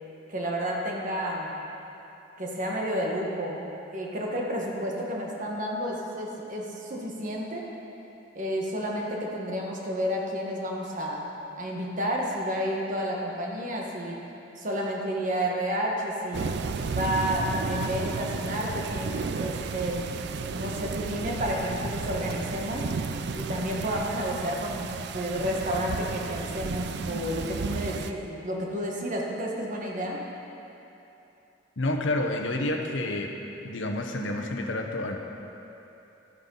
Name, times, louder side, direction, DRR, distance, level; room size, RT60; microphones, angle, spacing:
voice 1, 0.3-1.6 2.4-3.6 3.9-7.7 8.3-11.3 11.6-14.2 14.6-16.6 16.9-20.0 20.5-22.9 23.4-30.2, equal, 40° right, -2 dB, 1.4 m, -31 dB
sound 1, 16.3-28.1, right 4 dB, 55° right, 0.4 m, -33 dB
voice 2, 31.8-33.3 33.6-35.2, left 1 dB, 70° left, 2 dB, 0.9 m, -29 dB
12.0 x 9.4 x 3.9 m, 2.9 s
head